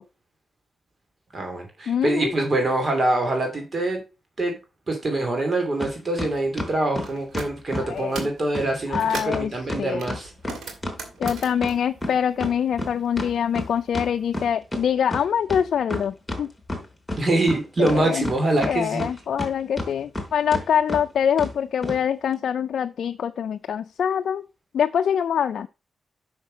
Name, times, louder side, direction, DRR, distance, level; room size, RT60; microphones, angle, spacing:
voice 1, 1.3-4.0 4.4-4.6 4.9-10.3 17.2-19.0, right 2 dB, 45° right, 4 dB, 2.6 m, -24 dB
voice 2, 1.9-2.3 7.8-8.3 8.9-9.5 9.8-10.0 11.2-16.5 17.8-18.3 18.7-24.4 24.7-25.7, left 8 dB, 80° left, 8 dB, 0.3 m, -24 dB
sound 1, 5.8-5.9 6.2-7.9 8.2-8.3 8.5-8.7 8.9-9.0 9.3-11.7 12.0-14.8 15.1-15.2 15.5-16.4 16.7-17.6 17.9-19.5 19.8-20.2 20.5-20.6 20.9-21.0 21.4-21.5 21.8-22.0, left 1 dB, 15° left, 3.7 m, -30 dB
sound 2, 7.0-7.5 7.9-8.4 8.8-9.5 10.0-12.9 13.2-14.3, right 5 dB, 90° right, 2.1 m, -39 dB
6.4 x 5.9 x 5.0 m, 0.29 s
cardioid pair, 60°, 0 cm